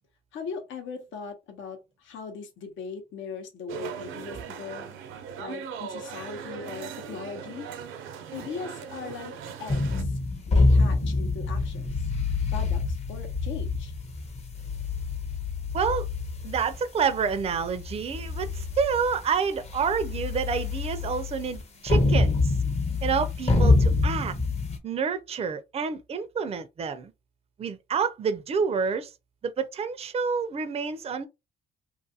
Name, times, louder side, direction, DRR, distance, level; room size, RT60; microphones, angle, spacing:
voice 1, 0.3-5.0 5.4-7.7 8.3-9.3 9.6-10.2 10.5-11.9 12.5-13.9, left 5 dB, 75° left, 0.8 m, -39 dB
sound 1, 3.7-10.0, right 7 dB, 85° right, 0.6 m, -39 dB
sound 2, 9.7-24.8, left 3 dB, 35° left, 0.7 m, -26 dB
voice 2, 15.7-16.1 16.4-22.5 23.0-24.4 24.8-27.1 27.6-29.1 29.4-31.3, right 6 dB, 30° right, 0.4 m, -28 dB
2.5 x 2.4 x 2.7 m
cardioid pair, 90°, 20 cm